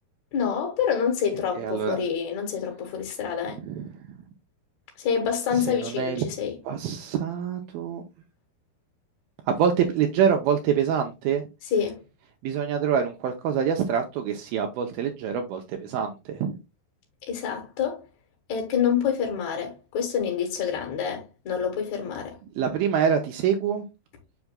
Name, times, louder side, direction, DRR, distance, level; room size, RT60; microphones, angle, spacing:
voice 1, 0.3-3.6 5.0-6.6 11.7-12.0 17.3-18.0 18.5-22.4, left 7 dB, 60° left, 2.0 m, -27 dB
voice 2, 1.6-2.0 3.7-4.2 5.5-6.3 6.7-8.0 9.5-11.4 12.4-16.6 22.6-23.8, right 7 dB, 80° right, 2.3 m, -26 dB
7.1 x 6.4 x 2.2 m
omnidirectional pair, 4.6 m